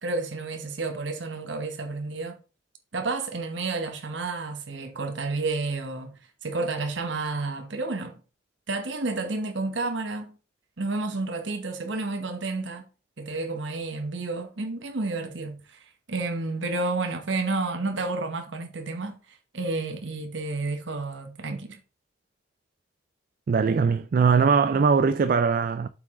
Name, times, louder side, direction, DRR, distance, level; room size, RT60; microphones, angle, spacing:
voice 1, 0.0-2.4 2.9-6.1 6.4-8.1 8.7-10.4 10.8-12.9 13.2-21.8, right 3 dB, 75° right, 1.1 m, -31 dB
voice 2, 23.5-25.9, right 5 dB, 45° right, 0.3 m, -21 dB
7.7 x 4.9 x 3.7 m
head